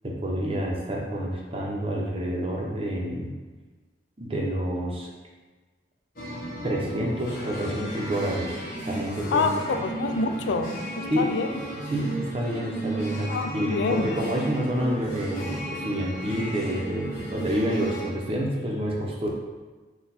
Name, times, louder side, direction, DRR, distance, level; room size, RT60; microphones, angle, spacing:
voice 1, 0.0-3.3 4.2-5.1 6.6-8.6 8.9-9.8 11.1-11.3 11.9-19.3, equal, 30° right, -2 dB, 0.6 m, -28 dB
sound 1, 6.2-18.1, right 2 dB, 50° left, 1.0 m, -34 dB
voice 2, 9.3-11.6 13.3-14.1, left 4 dB, 80° left, 7 dB, 0.3 m, -27 dB
4.3 x 2.2 x 4.0 m, 1.3 s
head